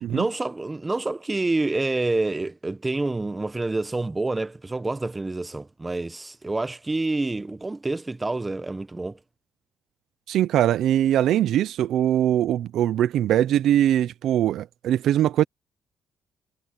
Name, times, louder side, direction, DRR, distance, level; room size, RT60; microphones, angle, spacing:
voice 1, 0.1-9.2, right 2 dB, 20° right, 1.2 m, -27 dB
voice 2, 10.3-15.4, right 11 dB, 75° right, 0.6 m, -21 dB
cardioid pair, 90°, 0 cm